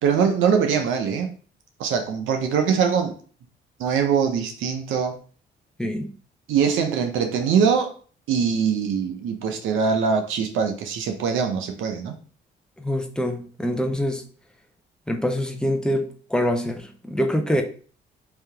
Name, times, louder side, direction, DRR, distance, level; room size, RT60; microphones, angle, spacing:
voice 1, 0.0-1.3 1.8-3.1 3.8-5.2 6.5-7.9 8.3-12.1, right 6 dB, 80° right, 5 dB, 0.7 m, -22 dB
voice 2, 5.8-6.1 12.8-14.2 15.1-17.6, equal, 5° left, 4 dB, 0.7 m, -25 dB
3.4 x 2.8 x 3.4 m, 0.42 s
cardioid pair, 90°, 20 cm